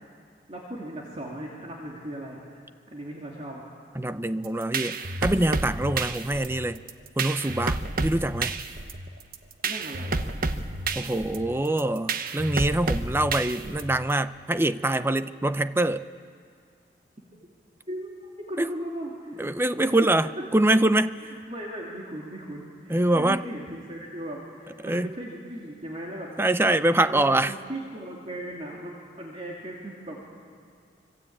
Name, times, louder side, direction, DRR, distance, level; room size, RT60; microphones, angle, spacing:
voice 1, 0.5-2.6 2.9-3.6 9.6-10.3 17.9-18.1 18.5-20.4 21.2-26.3 26.7-30.2, right 1 dB, 35° right, 2.8 m, -38 dB
voice 2, 4.0-6.8 7.2-8.6 11.0-16.0 18.6-18.7 19.4-21.2 22.9-23.4 24.8-25.1 26.4-27.5, right 1 dB, 15° right, 0.6 m, -24 dB
sound 1, 4.4-14.1, right 3 dB, 55° right, 1.1 m, -30 dB
25.5 x 24.0 x 8.7 m
head